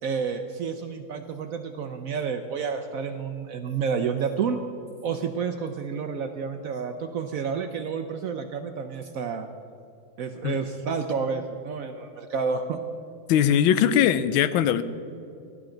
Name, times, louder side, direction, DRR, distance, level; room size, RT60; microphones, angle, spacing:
voice 1, 0.0-4.6 5.0-9.5 10.2-12.8, right 6 dB, 85° right, 7 dB, 0.7 m, -30 dB
voice 2, 13.3-14.8, left 9 dB, 80° left, 13 dB, 1.4 m, -20 dB
18.0 x 11.5 x 3.9 m, 2.7 s
omnidirectional pair, 2.2 m